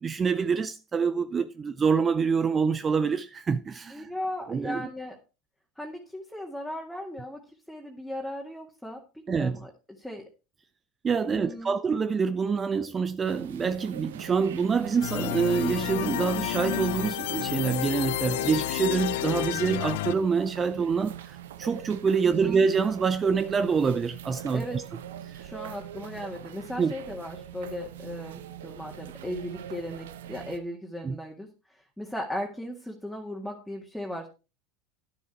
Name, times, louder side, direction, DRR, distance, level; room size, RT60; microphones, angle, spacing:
voice 1, 0.0-4.1 4.5-4.8 9.3-9.6 11.0-24.8 25.3-25.4 26.8-26.9 31.0-31.2, right 5 dB, 30° right, 0.5 m, -26 dB
voice 2, 3.9-5.2 5.8-7.4 7.7-9.7 10.0-10.2 11.2-11.8 22.2-22.7 24.5-24.8 25.4-34.3, left 1 dB, ahead, 2.0 m, -37 dB
sound 1, 13.2-30.6, right 10 dB, 80° right, 0.8 m, -43 dB
sound 2, 15.0-20.1, left 17 dB, 70° left, 0.5 m, -30 dB
11.0 x 7.3 x 4.5 m
hypercardioid pair, 85°, 0 cm